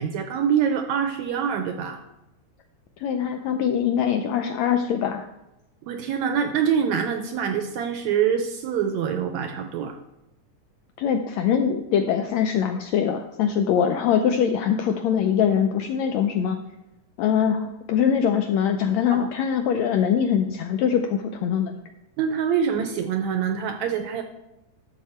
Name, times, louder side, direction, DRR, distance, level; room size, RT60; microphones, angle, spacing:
voice 1, 0.0-2.0 5.9-10.0 19.1-19.3 22.2-24.2, right 7 dB, 75° right, 6 dB, 1.7 m, -25 dB
voice 2, 3.0-5.2 11.0-16.6 17.2-21.8, left 8 dB, 80° left, 5 dB, 1.6 m, -23 dB
12.0 x 6.9 x 4.3 m, 0.90 s
omnidirectional pair, 3.8 m